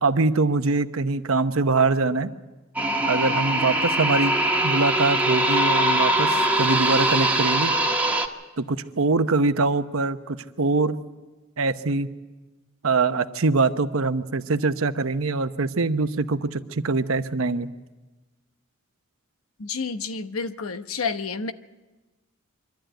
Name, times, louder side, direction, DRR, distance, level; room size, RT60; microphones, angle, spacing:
voice 1, 0.0-2.3 3.1-4.3 4.6-7.7 8.6-11.0 11.6-12.1 12.8-17.7, right 3 dB, 75° right, 10 dB, 0.9 m, -23 dB
sound 1, 2.8-8.3, right 1 dB, 10° right, 1.3 m, -22 dB
voice 2, 19.6-21.5, left 5 dB, 85° left, 10 dB, 0.9 m, -29 dB
24.0 x 13.0 x 9.1 m, 1.2 s
head